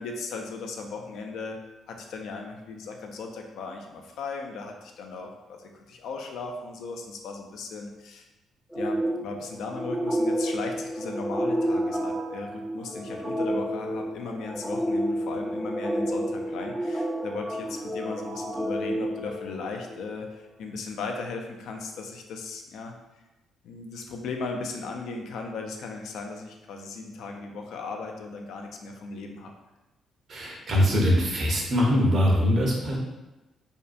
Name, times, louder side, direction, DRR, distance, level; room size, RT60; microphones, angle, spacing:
voice 1, 0.0-1.6 1.9-8.2 8.7-22.9 23.6-29.5, left 4 dB, 80° left, 3 dB, 0.3 m, -37 dB
sound 1, 8.7-20.0, equal, ahead, 0.3 m, -30 dB
voice 2, 30.3-33.0, equal, 50° right, -2 dB, 0.7 m, -22 dB
2.6 x 2.2 x 2.4 m, 1.1 s
cardioid pair, 90°, 0 cm